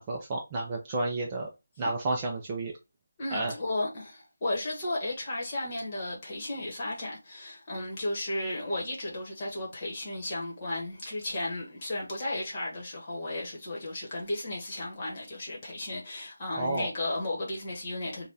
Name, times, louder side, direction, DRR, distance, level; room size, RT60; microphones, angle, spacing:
voice 1, 0.0-1.5 1.8-2.7 3.3-3.5 16.5-16.9, right 2 dB, 15° right, 0.4 m, -31 dB
voice 2, 3.2-18.3, left 1 dB, 25° left, 1.3 m, -34 dB
4.0 x 2.3 x 3.3 m
figure-of-eight pair, 175°, 0 cm